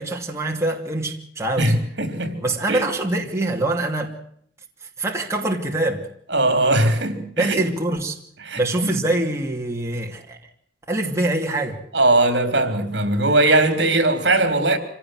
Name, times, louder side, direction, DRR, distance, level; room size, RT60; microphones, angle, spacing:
voice 1, 0.0-1.7 2.4-4.1 5.0-6.0 7.4-8.2 8.6-10.4 10.9-11.8, right 2 dB, 15° right, 2.6 m, -24 dB
voice 2, 1.6-2.4 2.7-2.8 6.3-7.6 8.4-8.9 11.9-14.8, right 2 dB, 65° right, 3.7 m, -19 dB
26.0 x 17.0 x 7.8 m
head